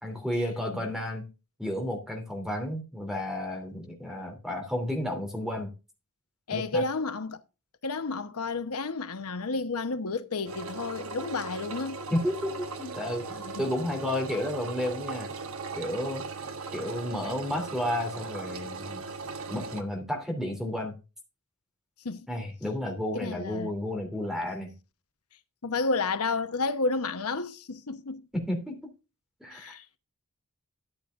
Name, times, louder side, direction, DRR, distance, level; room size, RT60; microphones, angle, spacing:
voice 1, 0.0-1.3 1.6-5.7 6.5-6.8 12.1-12.5 12.8-15.3 15.7-16.2 16.7-19.0 19.5-20.9 22.3-24.7 28.3-28.8 29.4-30.0, left 1 dB, ahead, 2.9 m, -32 dB
voice 2, 6.5-7.4 7.8-12.0 13.5-13.6 22.0-22.3 23.1-23.7 25.6-28.3 29.5-29.8, left 3 dB, 80° left, 1.0 m, -31 dB
Engine, 10.5-19.8, right 4 dB, 65° right, 1.2 m, -38 dB
13.0 x 8.6 x 2.5 m
head